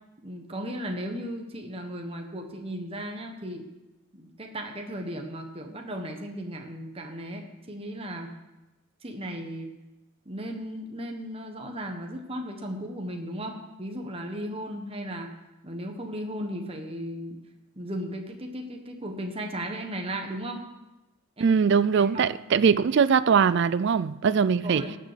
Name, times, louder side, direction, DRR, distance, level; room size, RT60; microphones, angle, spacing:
voice 1, 0.2-3.7 4.2-8.3 9.0-9.7 10.2-15.3 15.6-17.4 17.8-20.6 21.4-21.6 22.0-22.3 24.6-25.0, equal, 25° right, 1.3 m, -36 dB
voice 2, 21.4-24.8, right 6 dB, 55° right, 0.4 m, -21 dB
18.0 x 6.7 x 6.8 m
head